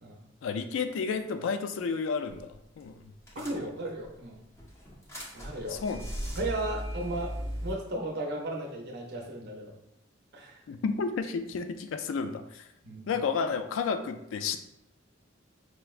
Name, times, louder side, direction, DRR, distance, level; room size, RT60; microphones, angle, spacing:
voice 1, 0.4-3.0 3.6-3.7 5.7-6.0 10.7-12.6 13.1-14.6, left 5 dB, 80° left, 9 dB, 0.3 m, -31 dB
sound 1, 2.4-2.5 2.8-2.9 3.3-4.1 4.6-7.7, equal, 15° left, 0.6 m, -38 dB
voice 2, 3.4-4.4 5.3-5.8 6.4-7.4 7.6-9.7 10.3-10.6 12.8-13.1, right 1 dB, 60° right, 0 dB, 0.6 m, -35 dB
4.5 x 2.0 x 2.4 m, 0.81 s
head